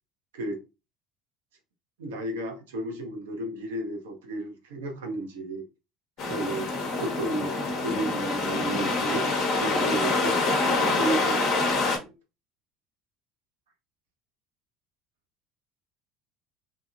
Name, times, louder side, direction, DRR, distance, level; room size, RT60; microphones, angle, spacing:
voice 1, 2.0-5.7 6.2-6.7 7.0-7.5 7.8-9.3 9.6-10.4 10.8-12.1, right 2 dB, 70° right, 0.8 m, -33 dB
sound 1, 6.2-12.0, left 3 dB, 50° left, 0.9 m, -26 dB
2.9 x 2.7 x 2.4 m
figure-of-eight pair, 65°, 0 cm